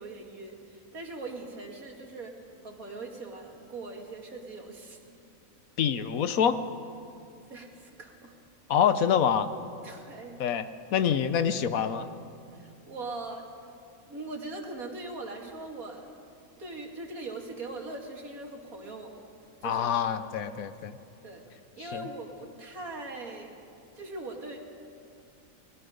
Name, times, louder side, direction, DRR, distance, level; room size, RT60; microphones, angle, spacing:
voice 1, 0.0-2.4 2.6-5.0 7.5-8.3 9.8-10.4 12.5-13.5 14.1-16.1 16.6-19.2 19.6-20.3 21.2-21.4 21.8-23.5 23.9-24.6, right 2 dB, 75° right, 1 dB, 2.7 m, -41 dB
voice 2, 5.8-6.6 8.7-9.5 10.4-10.7 10.9-12.1 19.6-21.0 21.9-22.1, left 8 dB, 75° left, 11 dB, 1.3 m, -26 dB
30.0 x 20.5 x 5.1 m, 2.5 s
omnidirectional pair, 1.5 m